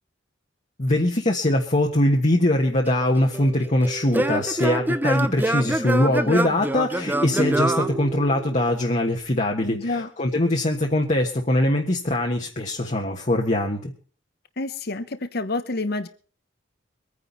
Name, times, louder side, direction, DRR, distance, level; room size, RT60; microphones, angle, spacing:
voice 1, 0.8-13.9, left 1 dB, 40° left, 0 dB, 1.4 m, -22 dB
Singing / Plucked string instrument, 2.9-8.7, right 1 dB, 10° right, 0.7 m, -26 dB
voice 2, 9.7-10.1 14.6-16.1, left 2 dB, 55° left, 11 dB, 1.0 m, -28 dB
23.5 x 9.8 x 4.1 m, 0.40 s
head